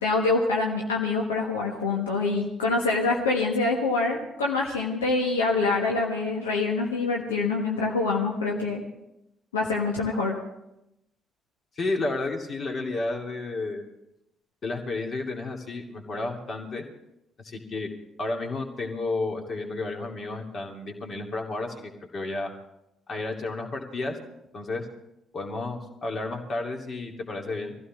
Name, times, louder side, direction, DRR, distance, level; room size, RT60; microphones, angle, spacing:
voice 1, 0.0-8.8 9.5-10.4, left 3 dB, 80° left, -1 dB, 1.5 m, -25 dB
voice 2, 11.8-13.9 14.6-16.8 17.4-17.9 18.2-22.5 23.1-24.2 24.5-24.9 25.3-27.8, left 2 dB, 40° left, 1 dB, 2.6 m, -32 dB
23.0 x 15.5 x 3.7 m, 0.87 s
figure-of-eight pair, 45°, 0 cm